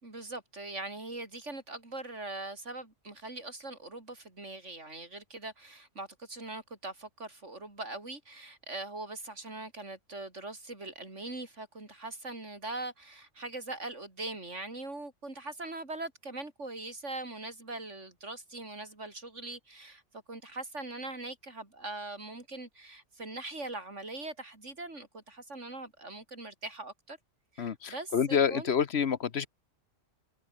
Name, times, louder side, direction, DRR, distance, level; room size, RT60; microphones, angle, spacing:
voice 1, 0.0-20.0 20.3-27.2 27.5-28.7, right 2 dB, 75° right, 5.2 m, -41 dB
voice 2, 27.6-29.5, left 7 dB, 60° left, 1.2 m, -28 dB
omnidirectional pair, 1.2 m